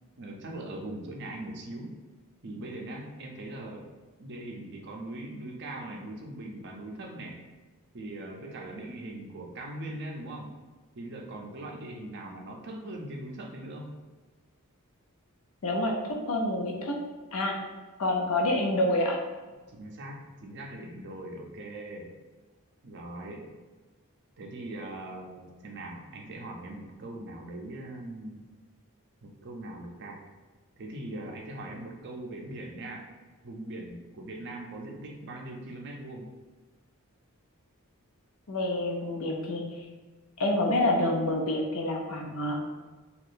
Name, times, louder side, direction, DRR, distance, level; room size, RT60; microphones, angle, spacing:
voice 1, 0.2-2.0 2.4-3.9 4.2-7.4 7.9-10.5 10.9-14.0 19.7-22.1 22.8-23.5 24.4-28.5 29.2-30.2 30.8-33.1 33.4-36.3, right 1 dB, 50° right, 1 dB, 0.5 m, -40 dB
voice 2, 15.6-15.9 16.3-17.0 17.3-17.5 18.0-19.2 38.5-39.6 40.4-42.6, left 1 dB, 70° left, 1 dB, 0.6 m, -27 dB
2.6 x 2.3 x 3.7 m, 1.3 s
head